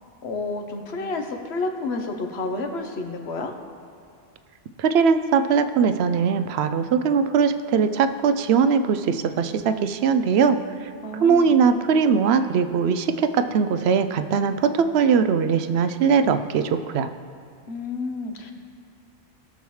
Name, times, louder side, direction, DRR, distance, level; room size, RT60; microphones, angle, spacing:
voice 1, 0.2-3.5 11.0-11.6 17.7-18.5, left 3 dB, 80° left, 4 dB, 1.2 m, -30 dB
voice 2, 4.8-17.1, right 6 dB, 80° right, 10 dB, 0.8 m, -21 dB
18.5 x 7.0 x 3.2 m, 2.4 s
omnidirectional pair, 1.1 m